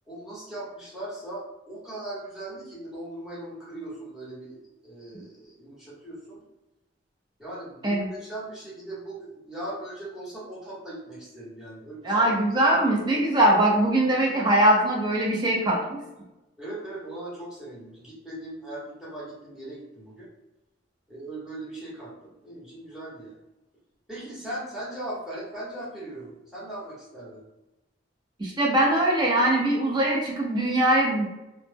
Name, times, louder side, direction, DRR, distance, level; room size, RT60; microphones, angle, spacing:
voice 1, 0.1-4.6 4.8-6.4 7.4-12.2 16.6-20.3 21.1-23.3 24.1-27.4, right 1 dB, 5° right, -9 dB, 0.8 m, -39 dB
voice 2, 12.0-16.0 28.4-31.3, right 1 dB, 20° right, -2 dB, 0.4 m, -22 dB
2.0 x 2.0 x 3.2 m, 0.97 s
head